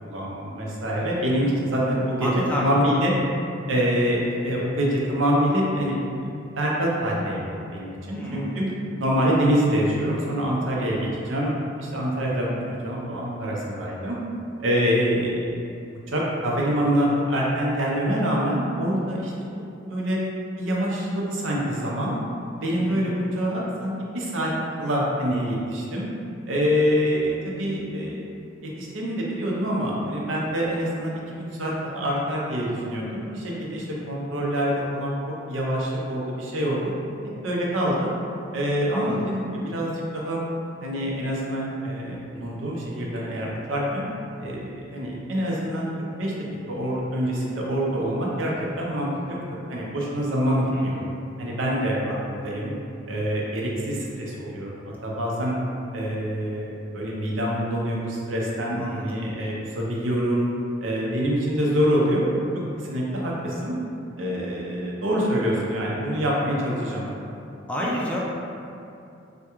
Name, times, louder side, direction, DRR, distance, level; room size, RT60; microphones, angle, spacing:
voice 1, 0.0-3.1 3.7-8.7 9.0-11.0 11.2-11.5 11.8-12.5 12.8-14.2 14.6-15.5 16.1-19.3 19.9-20.2 20.6-22.2 22.6-24.5 24.8-26.1 26.5-28.2 28.6-35.1 35.5-36.9 37.4-38.1 38.5-40.4 40.8-44.1 44.4-45.9 46.2-46.3 46.7-49.4 49.7-51.0 51.4-52.7 53.1-55.6 55.9-60.5 60.8-62.4 62.9-63.8 64.2-67.1, equal, 80° right, -4 dB, 0.6 m, -25 dB
voice 2, 2.2-2.8 8.1-8.6 22.8-23.1 38.9-39.3 50.7-51.1 58.8-59.1 67.7-68.2, equal, 5° left, -5 dB, 0.3 m, -30 dB
3.4 x 2.2 x 2.9 m, 2.6 s
head